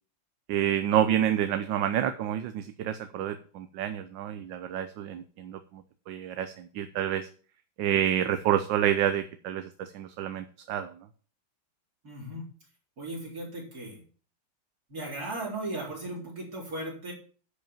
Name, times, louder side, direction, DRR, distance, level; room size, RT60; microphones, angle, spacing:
voice 1, 0.5-7.3 7.8-10.9, right 10 dB, 70° right, 9 dB, 1.4 m, -28 dB
voice 2, 12.0-12.5 13.0-14.0 14.9-17.1, right 1 dB, 50° right, -3 dB, 4.5 m, -37 dB
10.5 x 5.3 x 7.2 m, 0.42 s
omnidirectional pair, 2.2 m